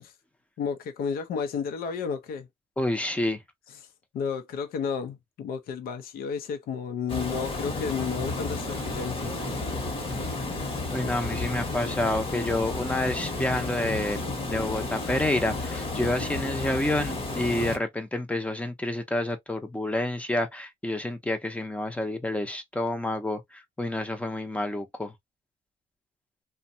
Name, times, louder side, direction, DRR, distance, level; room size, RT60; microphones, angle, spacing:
voice 1, 0.6-2.5 3.7-3.9 4.1-9.4, left 6 dB, 60° left, 0.6 m, -32 dB
voice 2, 2.8-3.4 10.9-14.2 14.5-25.1, left 1 dB, 5° left, 0.7 m, -29 dB
Water, 7.1-17.8, left 2 dB, 30° left, 1.1 m, -32 dB
2.6 x 2.2 x 2.6 m
cardioid pair, 110°, 17 cm